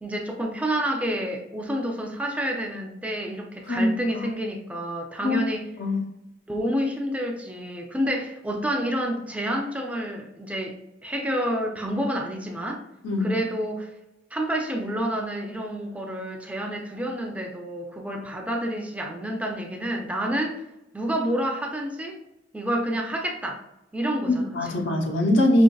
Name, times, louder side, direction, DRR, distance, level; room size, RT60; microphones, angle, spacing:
voice 1, 0.0-5.7 6.5-10.8 11.0-12.8 13.2-13.9 14.3-20.6 20.9-22.2 22.5-23.6 23.9-24.5 24.9-25.0, equal, 10° right, 1 dB, 0.5 m, -29 dB
voice 2, 24.5-25.6, left 1 dB, 90° left, 2 dB, 0.8 m, -21 dB
5.2 x 3.0 x 2.3 m, 0.90 s
head